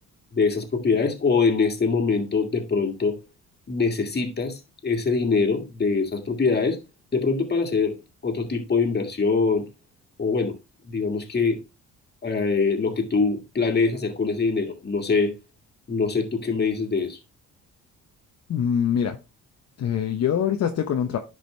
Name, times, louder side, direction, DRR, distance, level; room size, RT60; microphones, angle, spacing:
voice 1, 0.3-3.2 3.7-6.8 7.1-8.0 8.2-9.7 10.2-10.6 10.8-11.6 12.2-15.3 15.9-17.2, left 4 dB, 35° left, 2.0 m, -23 dB
voice 2, 18.5-19.2 19.8-21.2, left 8 dB, 55° left, 0.8 m, -24 dB
10.5 x 5.0 x 3.3 m
cardioid pair, 90°, 30 cm